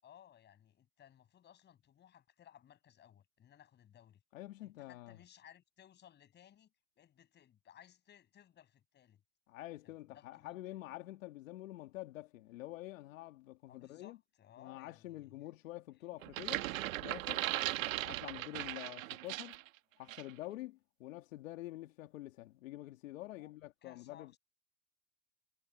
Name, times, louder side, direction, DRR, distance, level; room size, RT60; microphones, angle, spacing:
voice 1, 0.0-4.2 4.6-6.7 7.0-9.2 10.1-10.6 13.7-15.4 23.3-23.5 23.8-24.4, left 10 dB, 25° left, 7.2 m, -61 dB
voice 2, 4.3-5.2 9.5-14.2 14.6-16.7 17.0-17.4 18.0-19.6 20.0-24.3, left 16 dB, 80° left, 1.9 m, -47 dB
sound 1, 16.2-19.7 20.1-20.3, right 16 dB, 85° right, 1.5 m, -38 dB
supercardioid pair, 145°, 39 cm